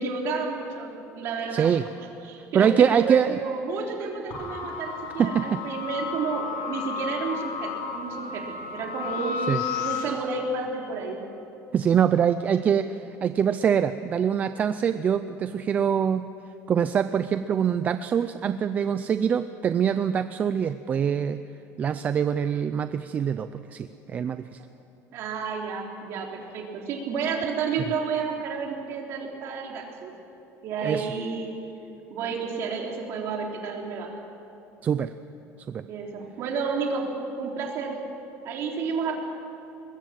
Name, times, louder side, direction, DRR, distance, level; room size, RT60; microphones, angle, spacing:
voice 1, 0.0-1.8 2.2-8.4 8.7-11.2 25.1-30.1 30.6-31.5 32.1-34.1 35.9-37.1 37.4-38.0 38.4-39.1, right 5 dB, 45° right, 0 dB, 3.7 m, -31 dB
voice 2, 1.5-1.8 2.5-3.4 5.2-5.6 9.5-9.6 11.7-16.3 16.7-21.4 21.8-24.6 30.8-31.1 34.8-35.1 35.7-35.9, right 8 dB, 25° right, 11 dB, 0.5 m, -24 dB
sound 1, 4.3-10.0, left 6 dB, 65° left, 7.1 m, -33 dB
23.0 x 21.5 x 7.5 m, 3.0 s
cardioid pair, 180°, 6 cm